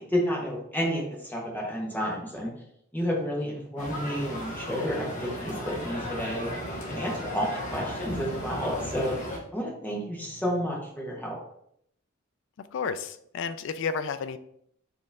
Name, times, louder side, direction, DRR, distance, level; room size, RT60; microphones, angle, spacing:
voice 1, 0.0-2.5 2.9-6.5 6.9-9.1 9.5-11.4, equal, 10° left, -3 dB, 1.1 m, -31 dB
sound 1, 3.8-9.4, equal, 40° left, 1.0 m, -35 dB
voice 2, 12.6-14.4, left 5 dB, 60° left, 12 dB, 0.3 m, -32 dB
4.4 x 3.1 x 3.5 m, 0.71 s
head